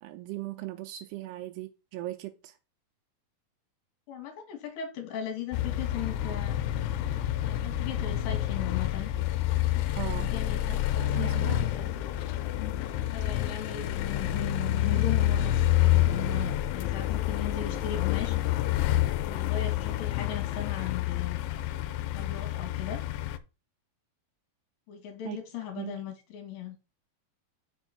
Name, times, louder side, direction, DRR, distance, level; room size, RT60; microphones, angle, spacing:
voice 1, 0.0-2.6 10.0-10.4 10.7-11.9 25.3-25.4 25.8-26.0, right 15 dB, 85° right, 2.7 m, -39 dB
voice 2, 4.1-6.6 7.5-9.1 10.0-11.9 13.1-18.4 19.2-21.6 22.1-23.0 24.9-26.8, left 9 dB, 65° left, 3.4 m, -38 dB
sound 1, 5.5-23.4, left 12 dB, 85° left, 2.7 m, -28 dB
6.2 x 4.4 x 5.7 m
omnidirectional pair, 4.7 m